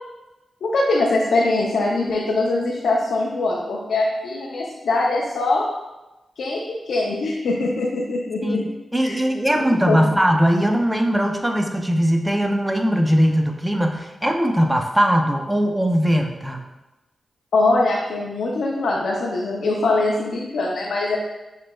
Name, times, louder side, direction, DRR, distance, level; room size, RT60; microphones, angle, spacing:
voice 1, 0.6-5.7 6.4-8.7 9.0-9.2 9.9-10.0 17.5-21.2, left 2 dB, 85° left, -3 dB, 0.5 m, -22 dB
voice 2, 8.4-16.6, equal, 10° right, 4 dB, 0.6 m, -20 dB
6.5 x 3.2 x 2.3 m, 1.0 s
cardioid pair, 55°, 0 cm